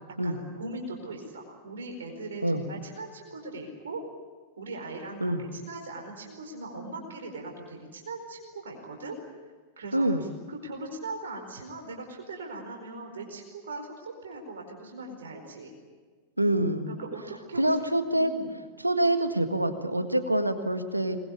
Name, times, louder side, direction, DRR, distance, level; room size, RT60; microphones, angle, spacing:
voice 1, 0.2-4.0 4.6-9.2 9.8-15.7 16.9-17.8 18.1-18.5, right 2 dB, 65° right, 2 dB, 4.6 m, -40 dB
voice 2, 9.9-10.2 16.4-16.9 17.6-18.3 18.8-21.2, right 1 dB, 85° right, 9 dB, 1.8 m, -25 dB
25.5 x 21.0 x 8.5 m, 1.4 s
figure-of-eight pair, 90°, 0 cm